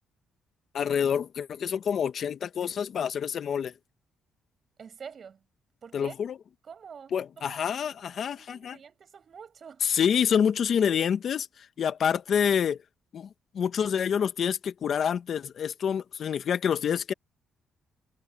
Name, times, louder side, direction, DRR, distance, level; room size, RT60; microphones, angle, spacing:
voice 1, 0.7-3.7 5.9-6.3 7.1-8.8 9.9-11.4 11.8-12.8 13.1-13.3 13.5-17.1, left 8 dB, 60° left, 1.5 m, -27 dB
voice 2, 4.8-5.4 5.8-6.2 6.6-9.9 10.8-11.1, right 6 dB, 50° right, 6.8 m, -47 dB
cardioid pair, 90°, 0 cm